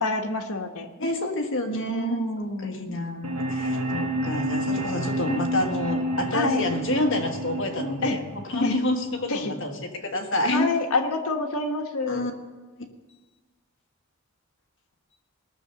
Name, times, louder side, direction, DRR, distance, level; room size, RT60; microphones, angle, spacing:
voice 1, 0.0-0.9 1.7-3.0 6.3-6.6 8.0-8.2 8.6-8.7 9.3-9.5 10.5-12.2, left 2 dB, 90° left, 3 dB, 1.2 m, -27 dB
voice 2, 1.0-10.7 12.1-12.3, left 1 dB, 60° left, 4 dB, 1.5 m, -28 dB
sound 1, 3.2-9.2, right 1 dB, 85° right, 1.2 m, -29 dB
18.5 x 6.8 x 6.9 m, 1.3 s
head